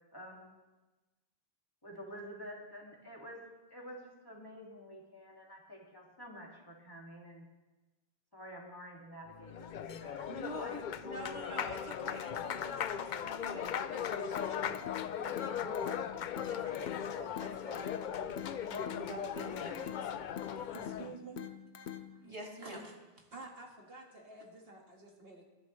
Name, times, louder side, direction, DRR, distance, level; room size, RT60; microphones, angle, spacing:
voice 1, 0.1-0.5 1.8-3.4 3.7-7.5 8.3-10.8 19.7-19.9 21.0-21.1, equal, 20° left, -2 dB, 2.2 m, -49 dB
Applause, 9.3-21.2, left 8 dB, 60° left, 0.6 m, -38 dB
voice 2, 10.3-18.1 18.6-19.8 22.2-22.8, equal, 25° right, -1 dB, 2.2 m, -46 dB
sound 1, 14.4-22.4, left 9 dB, 80° left, 1.0 m, -46 dB
voice 3, 20.7-21.4 21.9-23.0 23.3-25.4, right 3 dB, 65° right, 0 dB, 1.9 m, -50 dB
21.5 x 11.0 x 3.1 m, 1.2 s
omnidirectional pair, 1.1 m